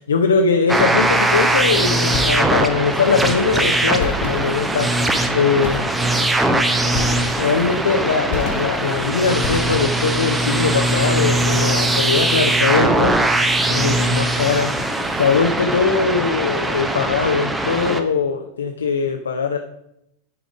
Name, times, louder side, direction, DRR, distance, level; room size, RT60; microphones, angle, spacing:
voice 1, 0.0-5.9 7.4-13.1 13.7-14.7 15.1-19.6, left 5 dB, 70° left, 4 dB, 0.6 m, -21 dB
sound 1, 0.7-18.0, right 2 dB, 10° right, 0.7 m, -20 dB
sound 2, 2.1-2.8 4.0-4.9 5.6-6.2 6.9-7.7 8.3-9.0 9.4-10.2, left 4 dB, 50° left, 1.1 m, -29 dB
9.7 x 5.0 x 4.9 m, 0.81 s
figure-of-eight pair, 90°, 0 cm